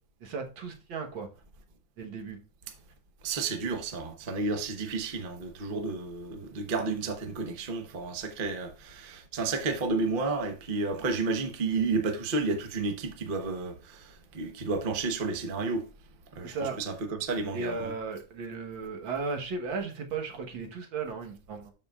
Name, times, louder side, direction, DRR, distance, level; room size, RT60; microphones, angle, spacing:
voice 1, 0.2-1.3 2.0-2.4 16.4-16.8 17.5-21.7, right 4 dB, 75° right, 2.0 m, -35 dB
voice 2, 3.2-15.8 16.3-17.9, right 3 dB, 35° right, 0.9 m, -31 dB
12.5 x 5.2 x 2.4 m
omnidirectional pair, 2.1 m